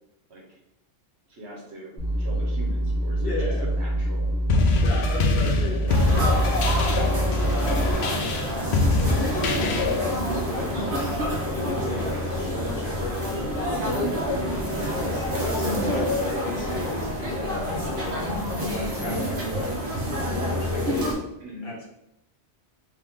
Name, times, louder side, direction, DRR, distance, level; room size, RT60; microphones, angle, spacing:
voice 1, 1.3-4.3 6.9-7.1 15.8-16.0 21.4-21.7, right 1 dB, 75° right, -2 dB, 1.2 m, -41 dB
sound 1, 2.0-7.9, right 1 dB, 20° left, 1.4 m, -26 dB
voice 2, 3.2-3.7 4.8-6.3 7.5-8.4 9.1-10.8 11.5-13.5 14.9-17.5 18.7-19.8 20.3-21.2 21.6-21.8, left 1 dB, 60° left, -4 dB, 1.3 m, -34 dB
sound 2, 4.5-10.1, left 3 dB, 75° left, 0.8 m, -24 dB
sound 3, 5.9-21.1, equal, 55° right, 1.1 m, -27 dB
3.5 x 3.1 x 3.5 m, 0.84 s
omnidirectional pair, 1.1 m